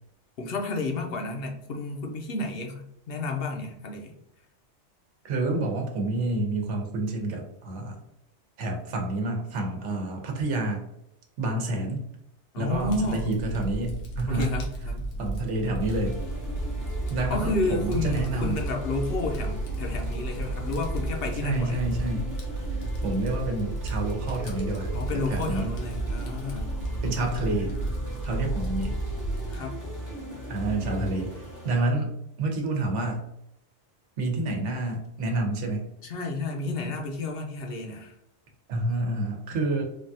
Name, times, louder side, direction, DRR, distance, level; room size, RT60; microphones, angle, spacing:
voice 1, 0.4-4.1 12.5-13.3 14.3-15.0 17.3-21.8 24.9-26.7 29.5-29.7 36.0-38.2, left 2 dB, 65° left, 2 dB, 0.7 m, -31 dB
voice 2, 5.2-8.0 8.6-10.9 11.4-12.0 12.6-14.5 15.2-16.2 17.1-18.6 21.4-22.3 22.7-24.9 25.3-25.6 27.0-27.8 28.2-29.0 30.5-32.1 32.4-33.3 34.2-35.9 38.7-39.8, right 2 dB, 90° right, 2 dB, 1.1 m, -28 dB
Fire, 12.7-29.6, right 2 dB, 85° left, 1.1 m, -33 dB
sound 1, 15.8-31.8, equal, 25° right, 0.4 m, -37 dB
3.3 x 2.3 x 2.6 m, 0.80 s
omnidirectional pair, 1.2 m